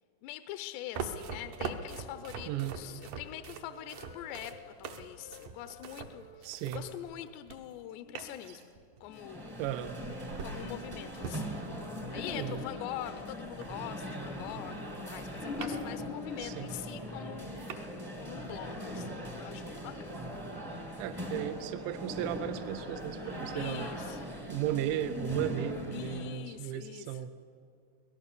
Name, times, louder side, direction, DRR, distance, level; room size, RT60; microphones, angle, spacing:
voice 1, 0.2-9.6 10.4-11.6 12.1-17.6 18.2-20.3 20.6-21.0 23.6-24.2 25.9-27.2, left 13 dB, 80° left, 10 dB, 2.7 m, -44 dB
sound 1, 0.9-7.8 8.1-9.1 9.8-14.0 14.3-16.1 16.4-16.5 17.1-17.2 17.6-17.8, right 6 dB, 65° right, 2.2 m, -44 dB
Wind instrument woodwind instrument, 2.1-4.7 5.1-9.0, left 3 dB, 65° left, 1.0 m, -58 dB
voice 2, 2.5-2.8 6.4-6.8 9.6-10.0 12.3-12.6 16.4-16.7 21.0-23.9 24.5-27.3, right 11 dB, 80° right, 11 dB, 3.0 m, -35 dB
sound 2, 9.0-26.4, left 1 dB, 15° right, 0.8 m, -40 dB
24.5 x 18.0 x 6.8 m, 2.3 s
omnidirectional pair, 5.1 m